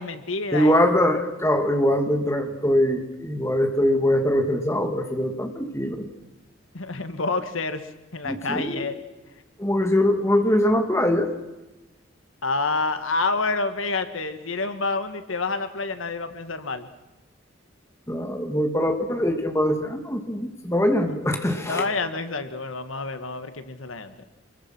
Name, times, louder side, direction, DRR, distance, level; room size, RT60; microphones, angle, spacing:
voice 1, 0.0-0.8 6.7-7.8 8.1-9.0 12.4-16.9 21.5-24.2, left 3 dB, 85° left, 9 dB, 1.8 m, -28 dB
voice 2, 0.5-6.1 8.3-8.9 9.6-11.3 18.1-21.8, left 1 dB, 15° left, 4 dB, 2.4 m, -22 dB
26.5 x 22.0 x 6.2 m, 1.0 s
head